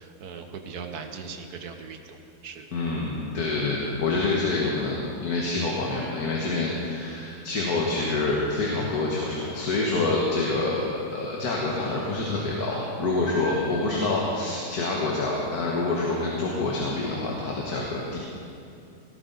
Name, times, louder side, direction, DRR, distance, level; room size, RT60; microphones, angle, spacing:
voice 1, 0.0-2.7 5.5-5.8, right 5 dB, 85° right, 5 dB, 1.6 m, -40 dB
voice 2, 2.7-18.2, left 3 dB, 85° left, -3 dB, 1.9 m, -27 dB
18.0 x 13.0 x 4.0 m, 2.5 s
omnidirectional pair, 1.6 m